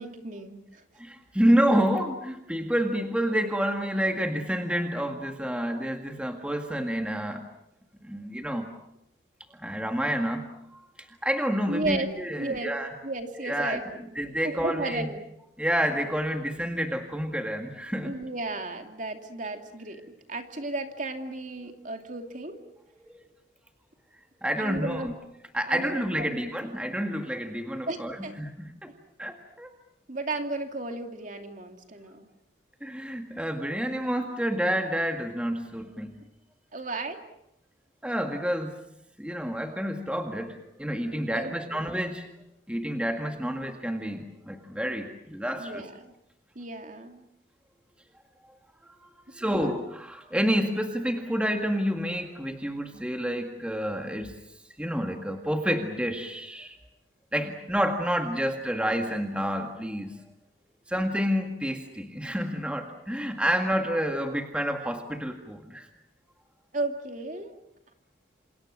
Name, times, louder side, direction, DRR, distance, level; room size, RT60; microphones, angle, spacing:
voice 1, 0.0-0.8 11.7-12.7 13.0-14.2 14.4-15.2 18.0-20.0 20.3-22.6 24.6-25.2 25.7-26.4 27.9-28.3 30.1-32.3 36.7-37.2 41.3-41.9 45.6-46.1 46.5-47.2 49.4-49.8 66.7-67.6, right 2 dB, 40° right, 5 dB, 2.6 m, -34 dB
voice 2, 1.0-7.5 8.0-8.7 9.5-12.9 13.4-15.1 15.6-18.1 23.0-23.2 24.4-25.1 25.5-28.9 29.2-29.7 32.8-36.1 38.0-38.8 39.2-42.3 42.7-45.9 49.3-54.3 54.8-56.8 57.3-60.2 60.9-65.9, equal, 5° right, 4 dB, 1.9 m, -29 dB
29.0 x 27.5 x 6.3 m, 0.81 s
head